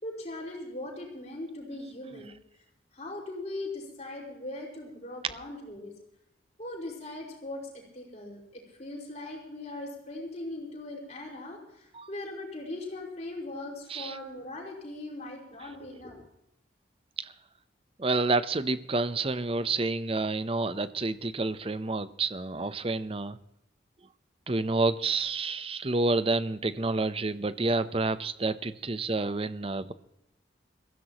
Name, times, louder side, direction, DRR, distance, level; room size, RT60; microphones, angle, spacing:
voice 1, 0.0-2.3 2.9-5.9 6.6-16.2, left 2 dB, 35° left, -2 dB, 5.2 m, -40 dB
voice 2, 18.0-23.4 24.5-29.9, right 3 dB, 30° right, 14 dB, 0.7 m, -29 dB
22.5 x 15.5 x 3.0 m, 0.80 s
head